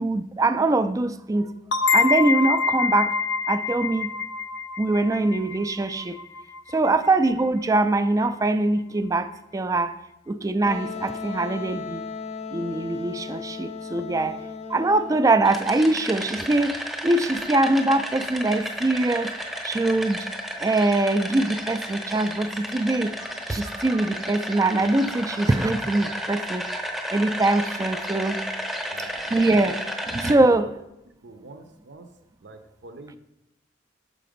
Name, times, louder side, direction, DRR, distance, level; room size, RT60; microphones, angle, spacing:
voice 1, 0.0-1.5 1.9-3.1 3.5-4.2 4.8-6.2 6.7-9.9 10.3-12.0 12.5-14.4 14.7-16.7 17.0-20.3 20.6-26.7 27.1-28.4 29.0-29.8 30.1-30.6, right 2 dB, 20° right, 0.3 m, -23 dB
sound 1, 1.7-7.1, left 5 dB, 80° left, 0.6 m, -26 dB
Wind instrument woodwind instrument, 10.7-16.2, left 5 dB, 35° left, 0.5 m, -36 dB
sound 2, 15.4-30.3, equal, ahead, 0.8 m, -33 dB
voice 2, 28.9-29.8 30.4-30.7 31.2-32.1 32.4-33.2, right 2 dB, 70° right, 0.7 m, -45 dB
6.7 x 5.0 x 5.1 m
head